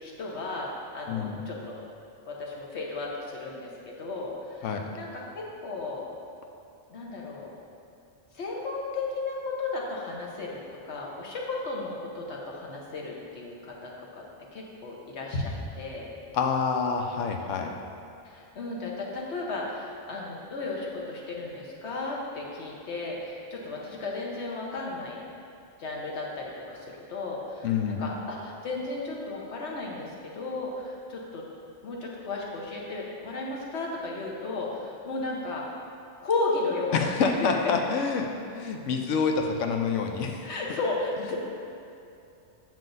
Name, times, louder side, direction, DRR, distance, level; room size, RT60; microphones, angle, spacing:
voice 1, 0.0-1.9 2.3-4.7 4.9-6.1 6.9-7.5 8.3-10.6 10.9-14.2 14.5-16.1 18.2-25.2 25.8-27.7 28.0-30.1 30.3-31.4 31.8-35.6 36.2-37.7 40.4-41.4, left 3 dB, 65° left, -2 dB, 1.3 m, -34 dB
voice 2, 1.1-1.4 4.6-4.9 16.3-17.7 27.6-28.0 36.9-40.5, left 5 dB, 85° left, 4 dB, 1.0 m, -27 dB
7.4 x 7.4 x 2.6 m, 2.7 s
omnidirectional pair, 1.2 m